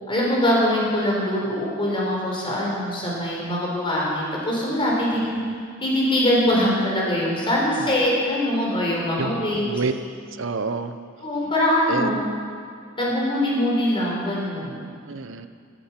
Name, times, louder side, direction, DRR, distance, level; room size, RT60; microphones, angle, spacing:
voice 1, 0.1-5.4 5.8-9.7 11.2-12.2 13.0-14.8, left 1 dB, 25° left, -4 dB, 4.2 m, -23 dB
voice 2, 5.2-5.5 7.8-8.0 9.2-9.9 10.3-11.0 11.9-12.2 15.1-15.5, right 4 dB, 65° right, 10 dB, 0.8 m, -29 dB
14.0 x 13.5 x 5.9 m, 2.2 s
head